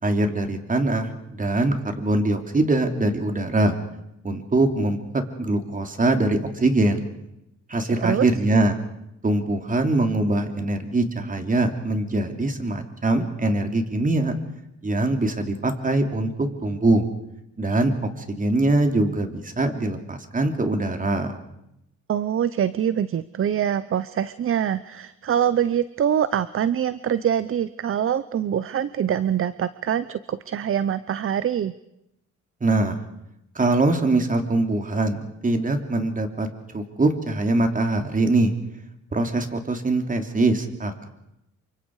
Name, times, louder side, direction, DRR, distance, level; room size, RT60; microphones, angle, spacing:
voice 1, 0.0-1.1 1.4-3.7 4.2-7.0 7.7-8.8 9.2-14.3 14.8-17.0 17.6-17.9 18.3-21.4 32.6-33.0 33.5-36.5 36.7-38.5 39.1-41.1, right 2 dB, 25° right, 5 dB, 3.3 m, -23 dB
voice 2, 22.1-31.7, right 9 dB, 45° right, 15 dB, 0.8 m, -24 dB
28.5 x 25.0 x 4.9 m, 0.84 s
cardioid pair, 90°, 30 cm